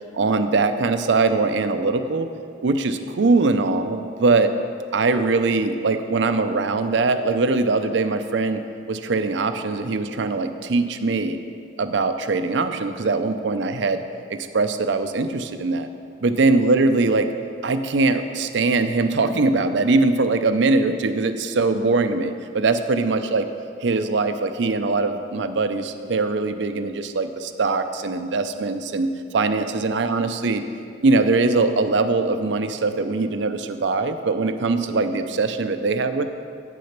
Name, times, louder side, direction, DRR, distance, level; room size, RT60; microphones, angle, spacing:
voice 1, 0.1-2.3 2.6-4.5 4.9-8.6 8.9-11.4 11.8-14.0 14.3-15.9 16.2-17.3 17.6-23.4 23.8-30.6 31.0-36.3, right 3 dB, 70° right, 9 dB, 0.5 m, -21 dB
8.8 x 6.2 x 5.8 m, 2.4 s
head